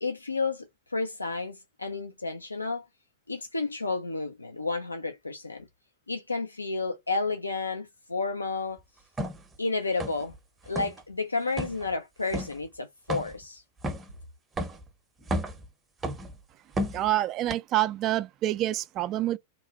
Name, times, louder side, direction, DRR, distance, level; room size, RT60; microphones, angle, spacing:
voice 1, 0.0-2.8 3.3-5.7 6.1-8.8 9.6-10.3 10.7-13.6, left 3 dB, 80° left, 0.4 m, -31 dB
sound 1, 9.2-9.4 10.0-10.4 10.7-11.0 11.6-11.8 12.3-12.6 13.1-13.4 13.8-14.1 14.6-14.8 15.2-15.6 16.0-16.4 16.8-17.1 17.5-17.6, equal, 15° right, 0.7 m, -32 dB
voice 2, 16.9-19.4, right 14 dB, 35° right, 0.4 m, -27 dB
2.9 x 2.2 x 2.8 m
figure-of-eight pair, 90°, 0 cm